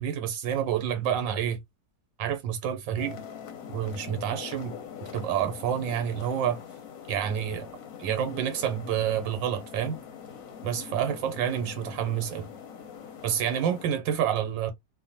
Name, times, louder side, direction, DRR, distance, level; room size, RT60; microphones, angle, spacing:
voice 1, 0.0-1.6 2.2-3.2 3.7-4.7 5.1-6.6 7.1-7.7 8.0-10.0 10.6-12.5 13.2-14.7, right 9 dB, 85° right, 1.4 m, -28 dB
sound 1, 3.0-13.9, left 7 dB, 60° left, 1.0 m, -43 dB
3.2 x 2.1 x 2.7 m
omnidirectional pair, 2.0 m